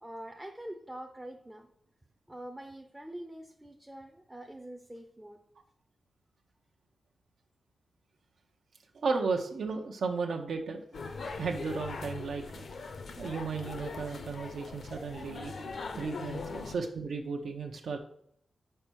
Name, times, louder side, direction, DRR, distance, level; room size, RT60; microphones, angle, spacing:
voice 1, 0.0-1.7 2.3-5.4 16.3-16.4, right 1 dB, 10° right, 4 dB, 0.5 m, -45 dB
voice 2, 9.0-10.8 11.4-12.6 13.2-15.5 16.0-18.0, right 4 dB, 85° right, 3 dB, 0.7 m, -34 dB
sound 1, 10.9-16.8, left 4 dB, 60° left, 0.6 m, -41 dB
5.6 x 4.4 x 6.1 m, 0.71 s
wide cardioid pair, 160°, 0 cm